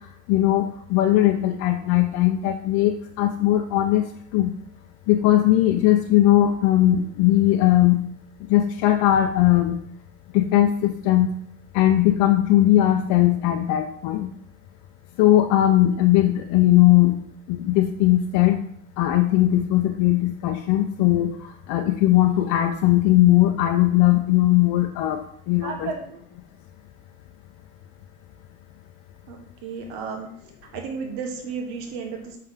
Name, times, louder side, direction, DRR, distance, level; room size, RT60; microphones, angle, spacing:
voice 1, 0.3-4.5 5.1-8.1 8.5-9.8 10.3-11.3 11.7-14.3 15.2-17.2 17.5-18.6 19.0-25.9, left 14 dB, 70° left, 3 dB, 0.6 m, -19 dB
voice 2, 25.6-26.2 29.3-30.3 30.7-32.4, right 5 dB, 85° right, 3 dB, 1.3 m, -33 dB
5.6 x 5.6 x 3.6 m, 0.64 s
cardioid pair, 160°, 30 cm